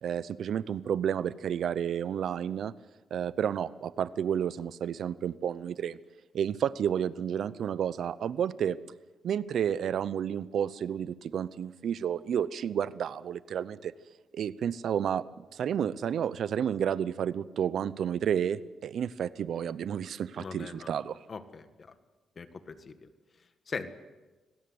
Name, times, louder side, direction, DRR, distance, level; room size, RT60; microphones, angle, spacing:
voice 1, 0.0-2.7 3.1-6.0 6.3-8.8 9.2-13.9 14.3-15.2 15.5-21.2, right 8 dB, 70° right, 17 dB, 0.7 m, -31 dB
voice 2, 20.4-20.9 21.3-21.9 22.3-23.1 23.7-23.9, left 5 dB, 45° left, 10 dB, 1.8 m, -40 dB
25.5 x 17.5 x 8.0 m, 1.2 s
cardioid pair, 95°, 0 cm